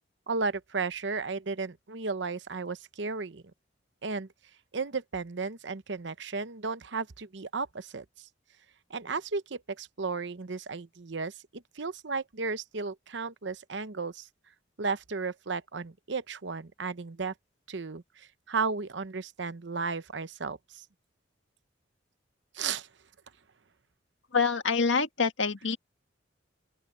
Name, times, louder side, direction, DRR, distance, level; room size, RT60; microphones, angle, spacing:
voice 1, 0.3-3.4 4.0-4.3 4.7-8.3 8.9-14.3 14.8-17.3 17.7-20.8 22.5-22.9, right 4 dB, 65° right, 0.9 m, -34 dB
voice 2, 24.3-25.8, left 5 dB, 80° left, 1.7 m, -26 dB
open air
head